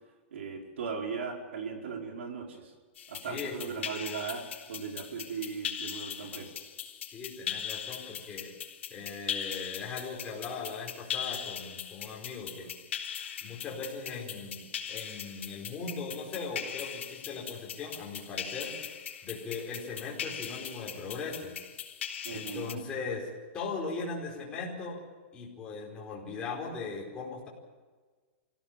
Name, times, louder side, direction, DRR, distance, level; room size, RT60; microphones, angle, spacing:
voice 1, 0.3-2.7 3.1-6.5 22.2-22.8, right 5 dB, 75° right, 1 dB, 5.4 m, -38 dB
sound 1, 2.9-22.7, left 8 dB, 80° left, 3.8 m, -40 dB
voice 2, 3.2-3.5 7.1-8.5 8.9-12.7 13.4-18.8 19.2-21.5 22.3-23.3 23.5-25.0 25.3-27.5, left 4 dB, 15° left, -3 dB, 4.9 m, -39 dB
25.0 x 17.0 x 7.5 m, 1.4 s
supercardioid pair, 175°, 7 cm